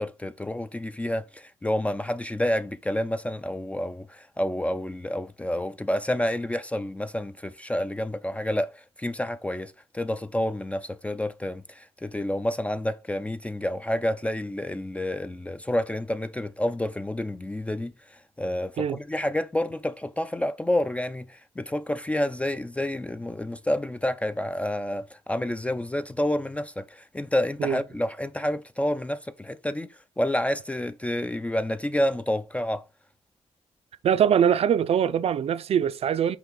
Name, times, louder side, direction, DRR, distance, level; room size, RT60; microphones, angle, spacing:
voice 1, 0.0-32.8, left 1 dB, 10° left, 0.3 m, -29 dB
voice 2, 34.0-36.4, right 8 dB, 65° right, 0.5 m, -22 dB
5.7 x 4.5 x 3.7 m
wide cardioid pair, 130°, 11 cm